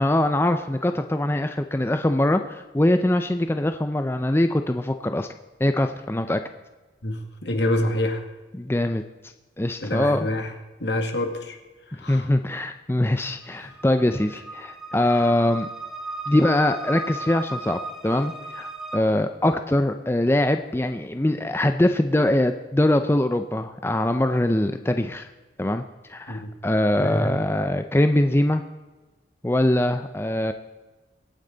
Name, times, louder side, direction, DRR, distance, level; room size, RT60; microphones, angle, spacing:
voice 1, 0.0-5.3 5.6-6.4 8.6-9.0 9.6-10.3 12.1-15.7 16.3-25.3 25.6-25.8 26.1-28.6 29.4-30.5, left 1 dB, 15° left, 7 dB, 0.5 m, -22 dB
voice 2, 7.0-8.3 9.8-10.5 10.8-11.6 11.9-12.3 13.6-13.7 15.1-15.2 26.3-26.6 26.9-27.3, left 1 dB, 75° left, 5 dB, 1.8 m, -27 dB
Emotional String, 13.3-19.0, right 2 dB, 5° right, 1.1 m, -35 dB
24.0 x 9.0 x 3.9 m, 1.2 s
head